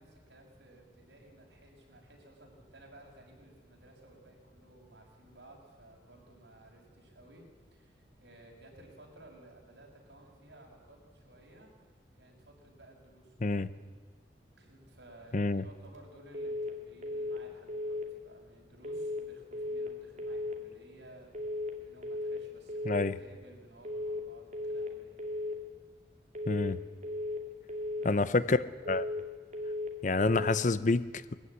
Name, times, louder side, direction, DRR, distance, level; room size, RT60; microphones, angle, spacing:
voice 1, 0.0-7.5 7.7-11.7 12.2-13.7 14.6-21.5 21.8-25.2 27.9-28.5, right 1 dB, 80° right, 6.2 m, -56 dB
voice 2, 15.3-15.6 22.9-23.2 26.5-26.8 28.0-28.6 28.9-29.1 30.0-31.3, left 3 dB, 45° left, 0.7 m, -28 dB
sound 1, 16.3-16.7 17.0-17.4 17.7-18.1 18.8-19.2 19.5-19.9 20.2-20.6 21.3-21.7 22.0-22.4 22.7-23.1 23.8-24.2 24.5-24.9 25.2-25.6 26.3-26.7 27.0-27.4 27.7-28.1 28.9-29.3 29.5-29.9 30.2-30.6, left 1 dB, 45° right, 2.5 m, -36 dB
21.5 x 14.5 x 9.7 m
head